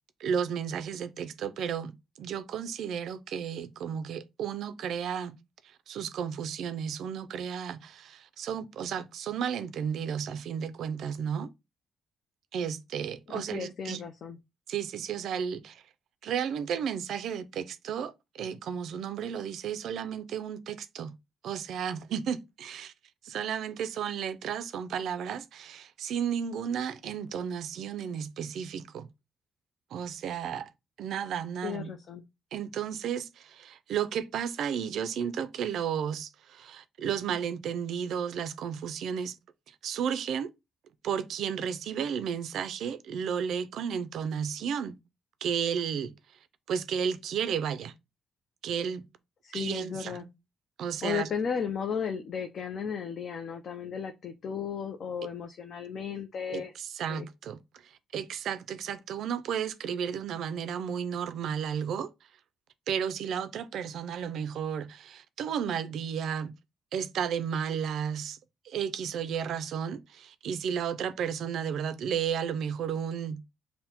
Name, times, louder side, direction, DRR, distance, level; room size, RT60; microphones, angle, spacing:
voice 1, 0.2-5.4 5.9-11.5 12.5-14.0 14.7-15.8 16.2-21.1 21.4-22.9 23.2-29.1 29.9-30.7 31.0-31.9 32.5-39.4 39.8-40.5 41.0-45.0 45.4-46.1 46.7-47.9 48.6-49.1 49.5-50.3 50.8-51.3 56.5-62.1 62.9-66.5 66.9-68.4 68.7-73.4, right 8 dB, 75° right, 0.4 m, -33 dB
voice 2, 13.3-14.4 31.6-32.2 49.4-50.2 51.0-56.7 57.1-57.3, left 7 dB, 60° left, 0.4 m, -35 dB
5.6 x 2.1 x 2.8 m
cardioid pair, 90°, 0 cm